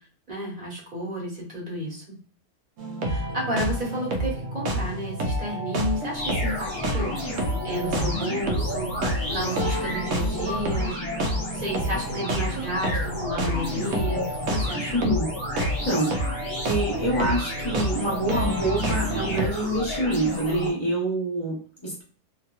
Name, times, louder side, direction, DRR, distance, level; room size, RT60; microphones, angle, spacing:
voice 1, 0.3-2.2 3.0-8.9 9.3-15.0, equal, 45° right, -4 dB, 1.4 m, -32 dB
sound 1, 2.8-19.5, right 1 dB, 80° right, 1.0 m, -29 dB
sound 2, 6.1-20.7, left 1 dB, 40° left, 1.2 m, -33 dB
voice 2, 11.9-12.4 14.9-15.3 15.9-16.2 16.7-22.0, right 1 dB, 25° left, -4 dB, 0.9 m, -26 dB
2.7 x 2.7 x 2.3 m, 0.42 s
omnidirectional pair, 1.3 m